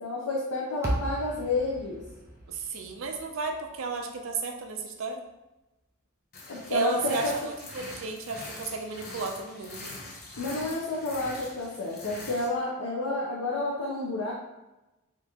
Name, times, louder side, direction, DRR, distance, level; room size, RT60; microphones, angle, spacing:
voice 1, 0.0-2.0 6.5-7.3 10.4-14.3, left 2 dB, 85° left, -4 dB, 0.6 m, -30 dB
sound 1, 0.8-5.1, right 1 dB, 15° right, 0.5 m, -37 dB
voice 2, 2.5-5.2 6.7-7.3 7.6-9.9, right 4 dB, 65° right, 4 dB, 0.5 m, -33 dB
sound 2, 6.3-12.5, left 2 dB, 45° left, 0.6 m, -43 dB
2.9 x 2.5 x 3.5 m, 1.0 s
head